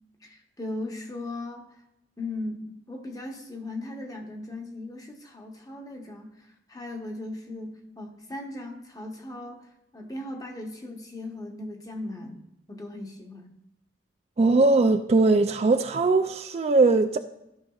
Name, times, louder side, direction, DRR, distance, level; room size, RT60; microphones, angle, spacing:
voice 1, 0.2-1.8 2.2-13.5, left 2 dB, 20° left, 1.0 m, -38 dB
voice 2, 14.4-17.2, right 3 dB, 35° right, 0.3 m, -20 dB
13.0 x 5.8 x 2.4 m
head